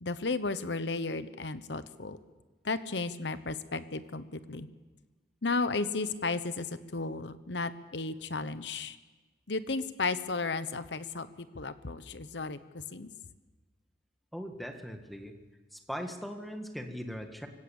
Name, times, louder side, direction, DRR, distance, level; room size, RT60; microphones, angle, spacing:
voice 1, 0.0-2.2 2.6-4.7 5.4-6.7 6.9-9.0 9.5-13.1, left 3 dB, 75° left, 13 dB, 1.1 m, -34 dB
voice 2, 14.3-15.4 15.7-17.5, equal, ahead, 4 dB, 1.7 m, -40 dB
24.0 x 17.0 x 7.2 m, 1.3 s
head